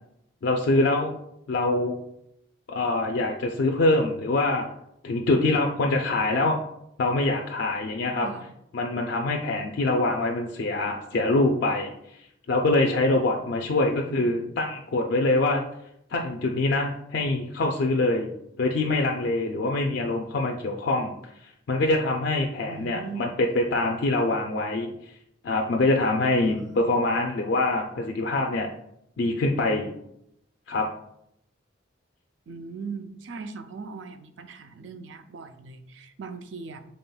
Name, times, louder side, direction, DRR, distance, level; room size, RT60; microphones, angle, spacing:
voice 1, 0.4-1.1 1.5-2.0 2.7-4.7 5.0-6.6 7.0-8.3 8.7-12.2 12.5-15.6 16.1-18.3 18.6-21.1 21.4-24.9 25.4-28.7 29.2-29.9 30.7-30.9, left 2 dB, 60° left, 1 dB, 0.4 m, -24 dB
voice 2, 13.7-14.5 22.7-23.4 26.4-27.3 32.5-36.8, right 5 dB, 70° right, 8 dB, 0.4 m, -40 dB
5.4 x 3.4 x 2.2 m, 0.77 s
head